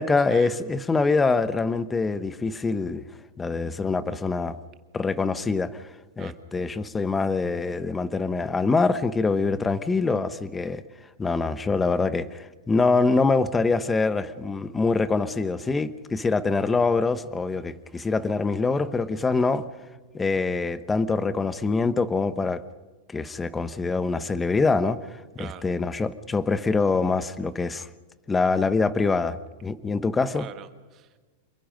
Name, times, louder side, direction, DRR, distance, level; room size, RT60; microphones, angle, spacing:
voice 1, 0.0-3.0 3.4-4.6 4.9-5.7 6.2-10.8 11.2-19.7 20.1-22.6 23.1-25.0 25.4-27.9 28.3-30.5, left 4 dB, 15° left, 13 dB, 1.0 m, -24 dB
voice 2, 30.3-31.2, right 10 dB, 35° right, 8 dB, 1.6 m, -43 dB
27.5 x 22.5 x 5.2 m, 1.3 s
supercardioid pair, 135°, 0 cm